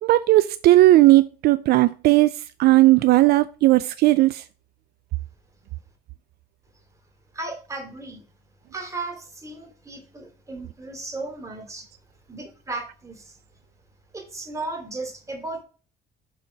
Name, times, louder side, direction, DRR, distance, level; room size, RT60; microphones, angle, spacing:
voice 1, 0.0-2.3 2.6-4.4, right 17 dB, 70° right, 0.4 m, -16 dB
voice 2, 7.3-8.2 8.7-11.9 12.3-13.4 14.1-15.6, right 2 dB, 20° right, 2.6 m, -35 dB
6.5 x 4.1 x 5.0 m
cardioid pair, 110°, 17 cm